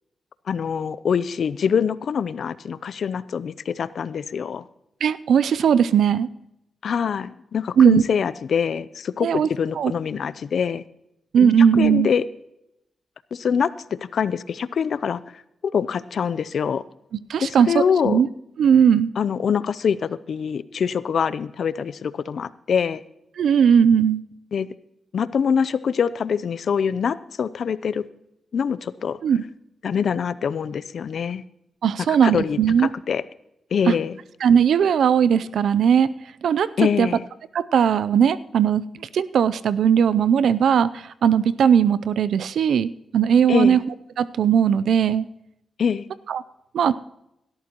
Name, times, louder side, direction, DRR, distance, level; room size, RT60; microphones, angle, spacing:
voice 1, 0.5-4.6 6.8-10.8 11.4-11.5 11.8-12.2 13.3-13.7 14.1-15.4 15.7-16.8 17.4-18.2 19.2-23.0 24.5-24.7 25.1-28.0 28.5-29.2 29.8-31.4 32.2-33.2 33.7-34.2 36.8-37.2 43.5-43.8 45.8-46.1, left 7 dB, 70° left, 17 dB, 0.5 m, -24 dB
voice 2, 5.0-6.3 7.8-8.0 9.2-9.5 9.8-9.9 11.3-12.1 17.3-18.3 18.6-19.1 23.4-24.2 29.2-29.4 31.8-32.9 33.9-34.0 34.4-36.1 36.4-36.7 37.0-37.1 37.5-43.8 44.2-45.3 46.3-46.4 46.7-46.9, right 8 dB, 80° right, 16 dB, 0.5 m, -18 dB
17.5 x 12.5 x 3.0 m, 0.83 s
cardioid pair, 60°, 0 cm